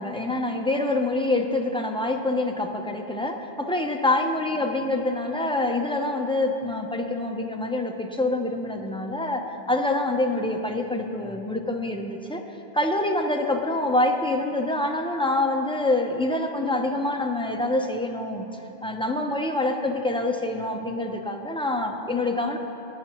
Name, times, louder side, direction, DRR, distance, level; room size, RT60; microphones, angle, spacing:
voice 1, 0.0-12.4 12.7-18.5 18.8-22.6, left 2 dB, 5° left, 2 dB, 0.5 m, -26 dB
19.0 x 10.0 x 3.0 m, 2.9 s
omnidirectional pair, 1.1 m